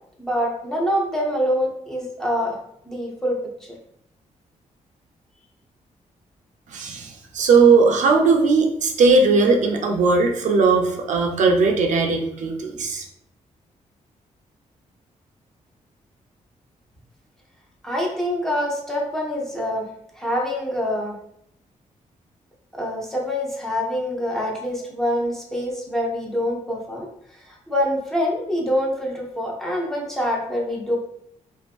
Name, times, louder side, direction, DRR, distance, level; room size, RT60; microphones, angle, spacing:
voice 1, 0.2-2.6 2.8-3.7 17.8-19.9 20.2-21.1 22.7-27.1 27.3-31.0, equal, 5° left, -3 dB, 0.5 m, -25 dB
voice 2, 6.7-13.0, right 4 dB, 65° right, 3 dB, 0.4 m, -18 dB
2.5 x 2.4 x 2.3 m, 0.74 s
wide cardioid pair, 140°, 13 cm